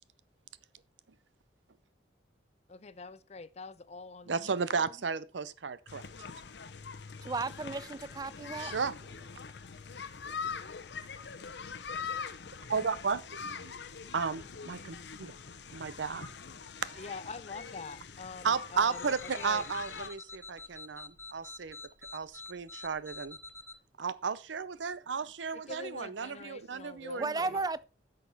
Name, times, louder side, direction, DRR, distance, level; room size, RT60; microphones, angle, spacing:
voice 1, 2.7-5.0 17.0-19.6 25.5-27.6, left 4 dB, 35° left, 0.5 m, -45 dB
voice 2, 4.3-6.1 8.6-8.9 10.2-10.6 12.7-13.7 14.1-15.3 15.7-16.3 16.8-17.0 18.4-21.8 22.1-23.4 24.0-27.6, right 5 dB, 90° right, 0.7 m, -34 dB
sound 1, 5.9-20.1, left 6 dB, 70° left, 0.7 m, -43 dB
voice 3, 7.2-8.8 12.7-12.8 27.2-27.8, right 3 dB, 20° right, 0.4 m, -34 dB
sound 2, 18.9-23.8, left 3 dB, 15° left, 0.9 m, -47 dB
10.0 x 6.4 x 4.1 m
head